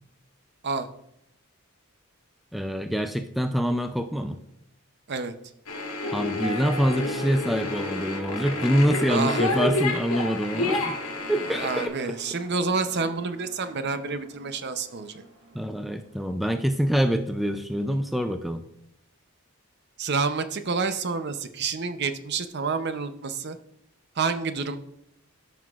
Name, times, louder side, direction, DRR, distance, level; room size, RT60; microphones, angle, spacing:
voice 1, 2.5-4.4 6.1-10.9 11.3-11.9 15.5-18.6, equal, ahead, 7 dB, 0.3 m, -25 dB
sound 1, 5.7-11.9, left 2 dB, 85° left, 1.6 m, -29 dB
sound 2, 5.7-17.8, right 1 dB, 75° right, 1.4 m, -46 dB
voice 2, 9.1-9.6 11.3-15.2 20.0-23.6 24.2-24.8, right 4 dB, 50° right, 10 dB, 0.6 m, -28 dB
13.5 x 5.8 x 2.4 m, 0.77 s
head